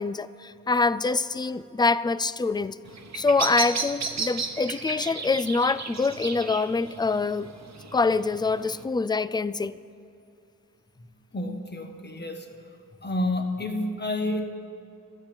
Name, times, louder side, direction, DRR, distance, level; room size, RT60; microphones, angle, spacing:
voice 1, 0.0-2.8 3.1-7.5 7.9-9.7, left 4 dB, 15° left, 17 dB, 0.3 m, -25 dB
Bird vocalization bird call bird song, 2.8-8.8, right 5 dB, 50° right, 1.0 m, -34 dB
voice 2, 11.3-12.5 13.0-14.4, left 1 dB, 30° left, 5 dB, 1.4 m, -29 dB
13.0 x 8.1 x 9.0 m, 2.6 s
wide cardioid pair, 65°, 33 cm